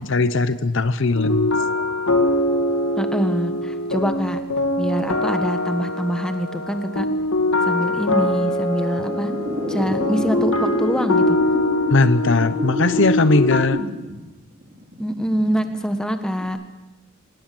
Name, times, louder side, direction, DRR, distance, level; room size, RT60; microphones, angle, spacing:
voice 1, 0.0-1.5 11.9-13.8, left 3 dB, 55° left, 14 dB, 0.7 m, -19 dB
sound 1, 1.1-13.6, left 1 dB, 75° left, 2.4 m, -23 dB
voice 2, 3.0-4.4 4.8-7.1 7.6-9.3 9.7-11.4 15.0-16.6, equal, 5° left, 7 dB, 1.5 m, -24 dB
sound 2, 8.9-14.2 14.6-15.9 16.4-16.5, left 1 dB, 35° right, 4.2 m, -28 dB
25.0 x 19.5 x 7.7 m, 1.1 s
head